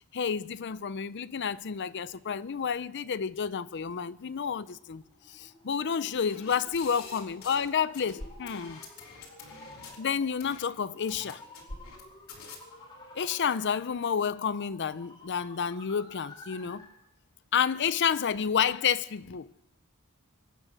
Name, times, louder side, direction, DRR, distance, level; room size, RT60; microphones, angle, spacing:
voice 1, 0.1-5.0 5.3-8.8 10.0-11.4 13.2-16.9 17.5-19.5, left 7 dB, 55° left, 0.5 m, -30 dB
sound 1, 4.7-17.0, left 1 dB, 20° left, 3.1 m, -52 dB
sound 2, 6.3-7.7 7.9-10.0 10.4-10.7 11.1-12.0 12.3-12.6, left 4 dB, 70° left, 3.8 m, -45 dB
24.5 x 8.9 x 6.4 m
head